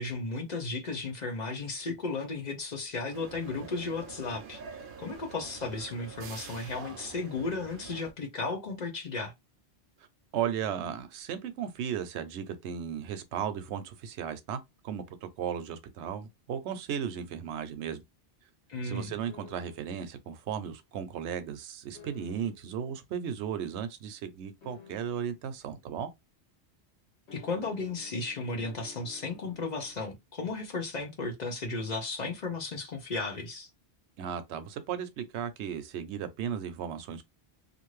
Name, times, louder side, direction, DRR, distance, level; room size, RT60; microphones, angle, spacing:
voice 1, 0.0-4.6 5.0-9.3 18.7-19.1 27.3-33.7, left 3 dB, 50° left, 0.6 m, -34 dB
sound 1, 3.1-8.1, right 5 dB, 60° right, 0.7 m, -46 dB
voice 2, 10.3-18.0 18.8-26.1 34.2-37.2, right 8 dB, 90° right, 0.9 m, -35 dB
sound 2, 19.3-20.1 21.9-22.7 24.6-25.4 27.3-30.0, left 7 dB, 80° left, 1.2 m, -53 dB
2.5 x 2.5 x 3.1 m
omnidirectional pair, 1.1 m